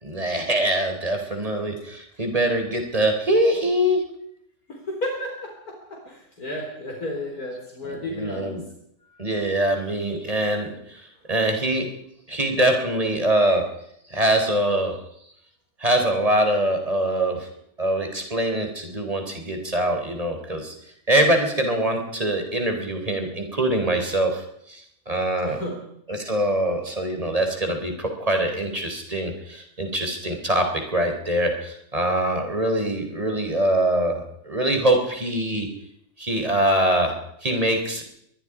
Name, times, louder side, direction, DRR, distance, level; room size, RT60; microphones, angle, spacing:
voice 1, 0.0-4.0 7.8-8.6 9.2-11.9 12.3-13.6 14.1-14.9 15.8-17.5 17.8-20.7 21.1-25.6 26.1-35.7 36.2-37.2 37.4-38.0, right 1 dB, 20° right, 4 dB, 3.7 m, -23 dB
voice 2, 4.7-8.6 25.4-25.9, left 1 dB, 60° left, -1 dB, 4.6 m, -32 dB
24.5 x 22.0 x 4.9 m, 0.73 s
omnidirectional pair, 1.8 m